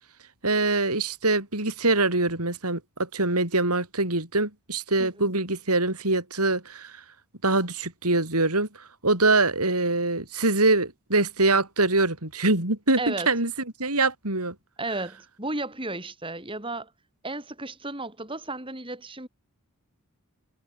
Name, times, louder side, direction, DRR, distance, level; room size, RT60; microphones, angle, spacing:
voice 1, 0.4-6.9 7.4-8.7 9.0-13.5 13.8-14.5, right 2 dB, 90° right, 7.8 m, -24 dB
voice 2, 13.0-13.3 14.8-16.9 17.2-19.3, right 2 dB, 25° right, 7.0 m, -33 dB
head